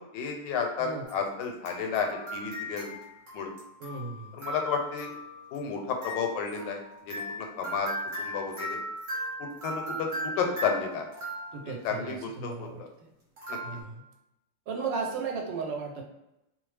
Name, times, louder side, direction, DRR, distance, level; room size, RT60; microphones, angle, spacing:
voice 1, 0.1-2.9 3.3-3.5 4.3-5.1 5.5-7.9 8.2-8.8 9.4-11.0 11.7-12.9 13.5-13.6, left 5 dB, 90° left, 3 dB, 1.2 m, -32 dB
sound 1, 1.0-11.9 13.4-13.8, equal, 40° right, 1.2 m, -38 dB
voice 2, 3.8-4.4 11.5-12.8 13.6-14.0 14.7-16.0, right 4 dB, 90° right, 2 dB, 1.3 m, -35 dB
2.9 x 2.0 x 3.1 m, 0.91 s
omnidirectional pair, 1.9 m